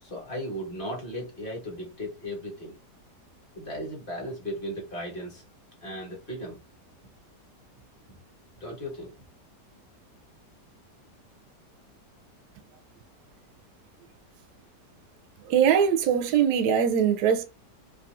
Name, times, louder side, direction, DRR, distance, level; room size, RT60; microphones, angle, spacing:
voice 1, 0.0-2.7 3.6-5.4 5.8-6.6 8.6-9.1, equal, 30° left, 1.8 m, -36 dB
voice 2, 15.4-17.5, right 8 dB, 75° right, 1.1 m, -22 dB
4.7 x 3.1 x 2.5 m
omnidirectional pair, 1.8 m